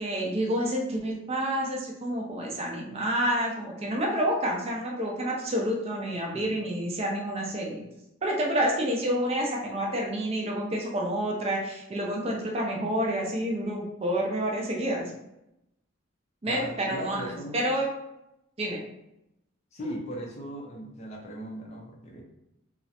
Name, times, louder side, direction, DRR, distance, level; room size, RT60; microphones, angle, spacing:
voice 1, 0.0-7.8 8.2-15.1 16.4-17.9 18.6-18.8, equal, 30° right, -1 dB, 0.4 m, -29 dB
voice 2, 6.3-6.7 16.5-17.6 19.7-22.2, equal, 35° left, 0 dB, 0.4 m, -38 dB
2.4 x 2.0 x 2.7 m, 0.86 s
head